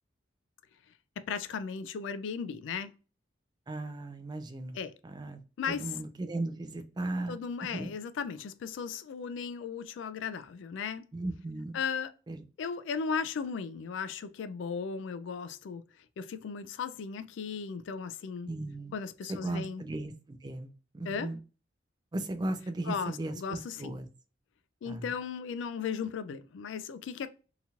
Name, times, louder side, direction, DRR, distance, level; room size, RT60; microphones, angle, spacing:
voice 1, 1.3-2.9 4.7-4.9 5.6-5.9 7.3-11.1 11.7-12.1 12.6-15.8 16.2-18.5 18.9-19.8 21.1-21.3 22.9-24.0 24.8-27.3, left 6 dB, 80° left, 0.3 m, -36 dB
voice 2, 3.7-4.8 5.0-7.4 7.7-7.9 11.1-11.8 12.3-12.4 18.5-18.9 19.3-21.4 22.1-24.1 24.8-25.1, right 2 dB, 20° right, 0.3 m, -36 dB
2.9 x 2.8 x 2.3 m
head